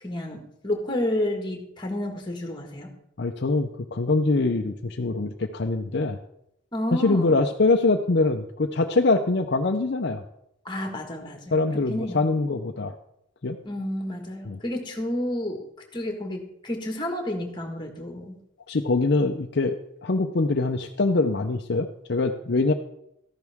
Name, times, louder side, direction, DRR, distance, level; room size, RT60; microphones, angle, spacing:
voice 1, 0.0-2.9 6.7-7.4 10.6-11.6 11.9-12.2 13.6-15.7 15.9-18.4, left 1 dB, 20° left, 4 dB, 1.6 m, -30 dB
voice 2, 3.2-6.2 6.9-10.2 11.5-12.9 13.4-13.6 14.5-14.6 18.7-22.7, left 3 dB, 55° left, 5 dB, 0.6 m, -23 dB
13.5 x 11.0 x 3.5 m, 0.78 s
head